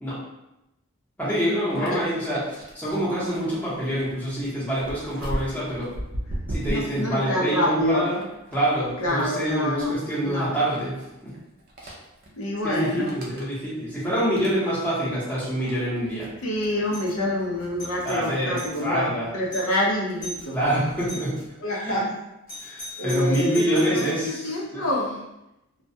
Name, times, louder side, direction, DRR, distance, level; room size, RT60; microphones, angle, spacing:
voice 1, 1.2-5.9 6.5-8.2 8.5-11.3 11.8-11.9 12.6-16.3 18.0-19.3 20.5-21.4 21.7-22.0 22.6-24.8, right 1 dB, 10° left, -9 dB, 0.7 m, -26 dB
sound 1, 1.7-21.6, equal, 45° right, 0.4 m, -40 dB
voice 2, 6.7-8.0 9.0-9.9 10.2-10.5 12.4-13.1 16.4-20.6 21.6-22.1 23.0-25.2, left 1 dB, 85° left, -2 dB, 0.5 m, -27 dB
Doorbell, 16.9-17.2 17.6-18.8 19.2-19.3 19.5-19.8 20.2-20.5 21.1-21.5 22.5-24.2, left 1 dB, 40° left, 0.8 m, -39 dB
2.2 x 2.1 x 2.6 m, 0.90 s
head